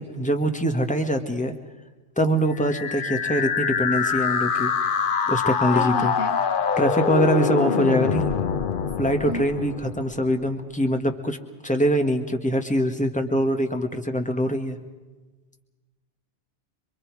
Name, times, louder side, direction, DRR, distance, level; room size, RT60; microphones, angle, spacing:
voice 1, 0.0-1.5 2.2-4.7 5.3-6.1 6.8-8.3 9.0-11.4 11.6-14.8, equal, 5° left, 5 dB, 1.7 m, -23 dB
sound 1, 2.6-10.5, left 6 dB, 50° left, 0.9 m, -25 dB
voice 2, 5.7-6.4 9.2-9.7, left 1 dB, 70° left, 8 dB, 1.5 m, -33 dB
27.5 x 23.0 x 4.8 m, 1.3 s
omnidirectional pair, 1.2 m